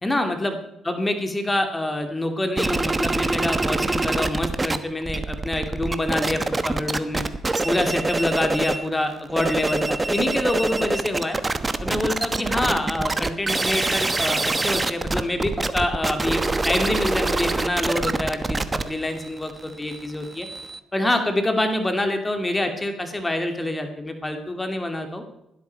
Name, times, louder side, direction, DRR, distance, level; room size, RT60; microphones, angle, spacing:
voice 1, 0.0-0.6 0.8-7.2 7.6-11.4 11.8-20.5 20.9-25.2, left 1 dB, 15° left, 6 dB, 2.3 m, -26 dB
sound 1, 2.6-4.8 5.0-8.9 9.2-20.8, right 2 dB, 20° right, 1.1 m, -25 dB
19.5 x 13.0 x 4.5 m, 0.85 s
cardioid pair, 90°, 0 cm